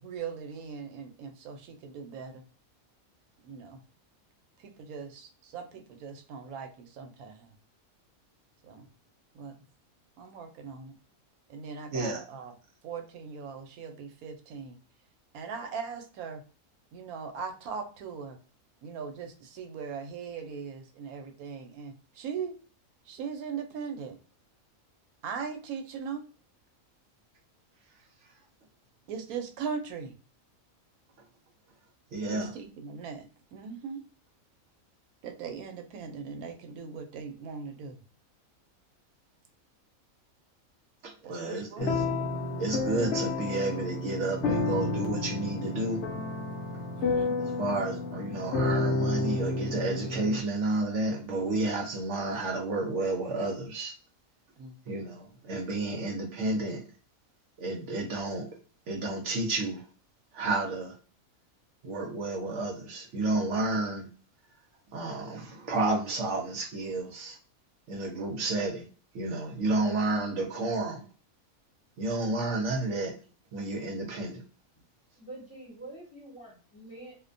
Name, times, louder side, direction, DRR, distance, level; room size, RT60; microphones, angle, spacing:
voice 1, 0.0-2.4 3.4-3.8 4.6-7.5 8.6-8.9 9.3-9.5 10.2-10.9 11.5-12.5 12.8-14.8 15.3-16.4 16.9-18.4 18.8-22.5 23.1-24.2 25.2-26.2 29.1-30.1 32.3-34.0 35.2-38.0 41.2-42.1 47.0-47.4 54.6-55.0, right 6 dB, 90° right, 6 dB, 1.0 m, -39 dB
voice 2, 11.9-12.2 32.1-32.5 41.0-42.1 42.6-46.0 47.4-54.0 54.9-56.8 57.6-58.5 58.9-59.8 60.3-61.0 61.8-64.1 64.9-67.4 67.9-68.8 69.1-71.0 72.0-73.1 73.5-74.4, right 2 dB, 65° right, 2 dB, 0.8 m, -31 dB
sound 1, 41.8-50.4, left 3 dB, 65° left, 0.8 m, -30 dB
voice 3, 75.1-77.1, right 2 dB, 25° left, -5 dB, 0.8 m, -46 dB
2.5 x 2.1 x 2.5 m, 0.36 s
omnidirectional pair, 1.5 m